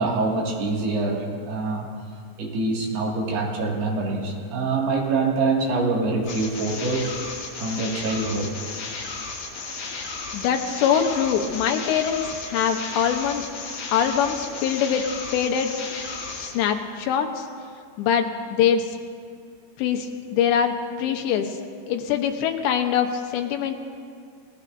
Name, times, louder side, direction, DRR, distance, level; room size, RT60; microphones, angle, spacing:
voice 1, 0.0-1.9 2.4-7.1 7.6-8.6, right 3 dB, 70° right, -2 dB, 4.1 m, -25 dB
sound 1, 6.3-16.6, left 4 dB, 55° left, 3.7 m, -34 dB
voice 2, 10.3-13.4 13.9-15.0 15.3-15.7 16.3-17.5 18.0-18.9 19.8-20.7 21.0-21.6 21.9-23.7, left 8 dB, 85° left, 5 dB, 3.3 m, -23 dB
29.5 x 18.5 x 2.6 m, 2.2 s
omnidirectional pair, 4.9 m